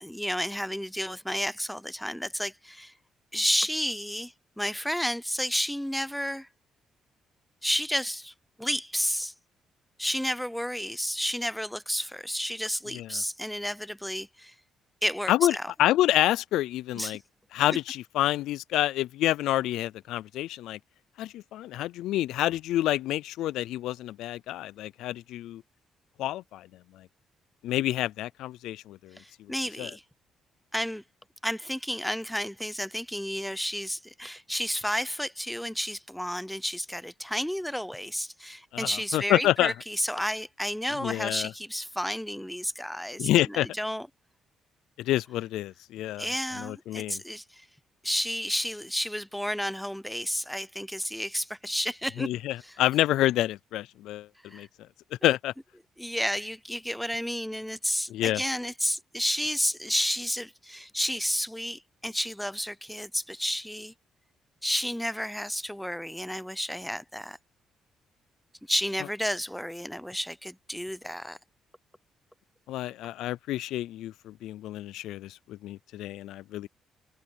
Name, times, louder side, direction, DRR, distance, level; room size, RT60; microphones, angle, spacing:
voice 1, 0.0-2.9 3.3-6.5 7.6-9.3 10.0-14.5 15.0-15.7 17.0-17.2 29.1-30.0 30.7-31.0 31.4-44.1 46.2-47.7 48.0-52.3 52.6-52.8 54.4-54.7 56.0-63.9 64.6-67.4 68.7-71.4, equal, ahead, 0.6 m, -31 dB
voice 2, 15.3-17.2 17.5-20.8 21.2-25.6 26.2-26.7 27.6-29.2 29.8-29.9 38.7-39.7 41.0-41.5 43.2-43.7 45.0-46.3 46.6-47.2 52.2-54.3 54.5-54.7 55.2-55.5 58.1-58.4 72.7-76.7, left 14 dB, 90° left, 0.3 m, -28 dB
cardioid pair, 90°, 0 cm